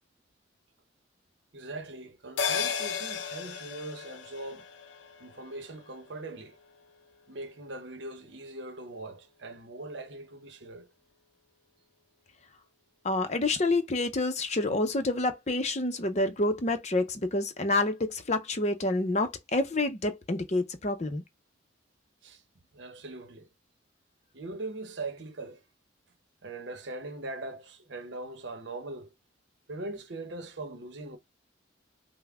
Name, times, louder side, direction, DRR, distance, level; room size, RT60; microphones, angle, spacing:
voice 1, 1.5-4.7 5.2-6.6 7.3-10.9 22.2-22.4 22.7-23.5 24.3-25.6 26.4-29.1 29.7-31.2, right 2 dB, 65° right, 0.8 m, -41 dB
sound 1, 2.4-7.1 7.4-7.5, left 6 dB, 75° left, 0.7 m, -35 dB
voice 2, 13.0-21.2, left 2 dB, 35° left, 0.6 m, -28 dB
5.7 x 2.1 x 3.5 m
head